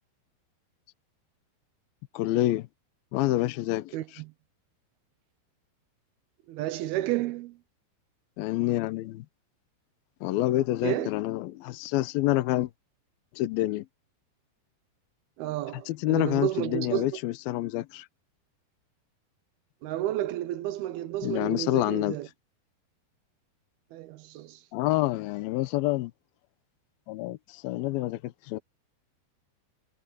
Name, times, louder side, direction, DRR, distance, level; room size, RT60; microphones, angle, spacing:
voice 1, 2.1-2.7 3.1-4.0 8.4-9.3 10.2-12.7 13.3-13.9 15.9-18.1 21.2-22.2 24.7-26.1 27.1-28.6, left 16 dB, 75° left, 2.5 m, -27 dB
voice 2, 3.9-4.3 6.5-7.6 10.8-11.1 15.4-17.2 19.8-22.3 23.9-24.6, right 14 dB, 80° right, 2.5 m, -31 dB
omnidirectional pair, 4.8 m